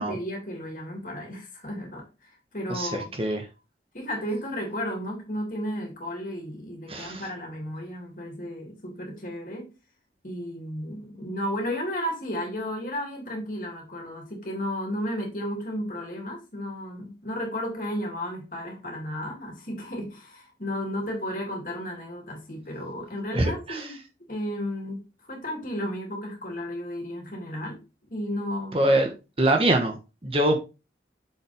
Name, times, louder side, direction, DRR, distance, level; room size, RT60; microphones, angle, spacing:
voice 1, 0.0-3.1 3.9-9.7 10.2-24.0 24.3-27.8 28.1-28.8, equal, 50° left, 2.9 m, -33 dB
voice 2, 2.7-3.4 6.9-7.2 23.3-23.9 28.7-29.1 29.4-30.6, right 1 dB, 30° right, 1.2 m, -24 dB
6.9 x 5.5 x 3.5 m
head